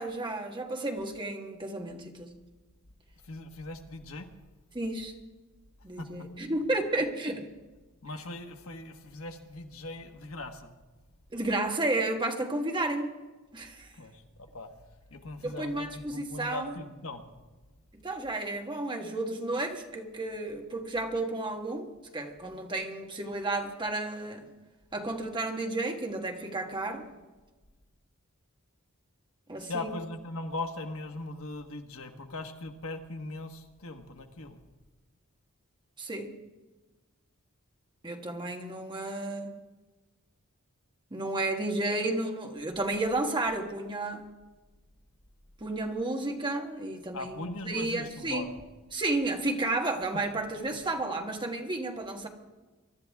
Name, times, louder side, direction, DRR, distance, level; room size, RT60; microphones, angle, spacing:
voice 1, 0.0-2.3 4.7-5.1 5.8-7.5 11.3-13.1 13.5-13.9 15.4-16.7 17.9-21.9 22.1-24.4 24.9-27.1 29.5-29.9 36.0-36.3 38.0-39.5 41.1-44.2 45.6-48.4 48.9-52.3, right 2 dB, 20° right, 3 dB, 1.5 m, -32 dB
voice 2, 3.2-4.3 6.0-6.1 8.0-10.7 13.9-14.7 15.1-17.2 29.6-34.6 47.1-48.6, left 2 dB, 70° left, 5 dB, 1.4 m, -39 dB
23.5 x 12.5 x 3.6 m, 1.2 s
head